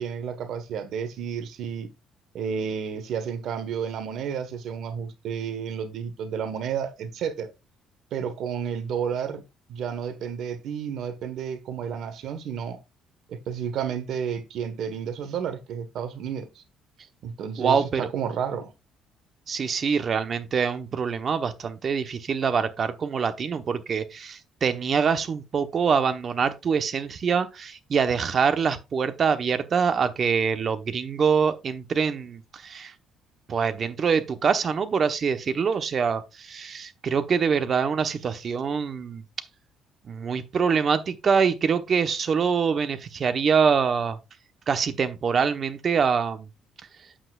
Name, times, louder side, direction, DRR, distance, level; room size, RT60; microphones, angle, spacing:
voice 1, 0.0-1.9 2.3-7.5 8.1-9.4 9.7-12.8 13.3-16.6 17.2-18.7, right 7 dB, 65° right, 1.4 m, -31 dB
voice 2, 17.6-18.1 19.5-32.9 33.5-39.2 40.1-44.2 44.7-46.5, right 6 dB, 40° right, 1.0 m, -24 dB
8.7 x 8.0 x 2.4 m
cardioid pair, 125°, 0 cm